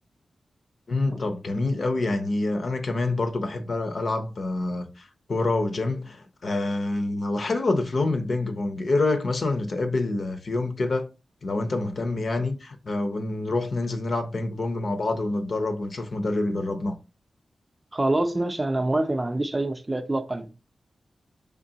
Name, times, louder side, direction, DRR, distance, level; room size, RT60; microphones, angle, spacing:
voice 1, 0.9-11.1 11.4-17.0, left 2 dB, 55° left, 0.6 m, -27 dB
voice 2, 17.9-20.5, right 2 dB, 20° right, 0.4 m, -26 dB
3.7 x 3.2 x 2.8 m
wide cardioid pair, 120°, 0 cm